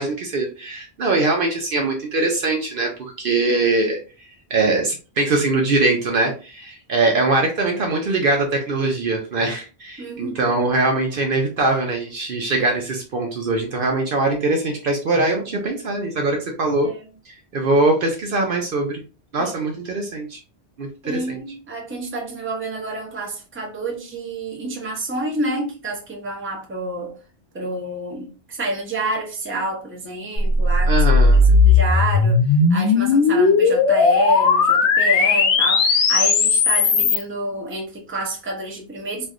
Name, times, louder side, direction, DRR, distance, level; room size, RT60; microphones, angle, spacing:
voice 1, 0.0-4.0 4.5-16.9 17.3-19.0 19.3-20.4 20.8-21.4 30.9-31.4, right 2 dB, 60° right, 0.8 m, -22 dB
voice 2, 10.0-10.5 16.8-17.0 19.4-19.5 21.0-27.2 27.5-31.0 31.3-39.3, right 2 dB, 15° right, 0.6 m, -28 dB
sound 1, 30.4-37.2, left 4 dB, 90° left, 0.9 m, -16 dB
3.1 x 2.6 x 2.4 m
omnidirectional pair, 1.1 m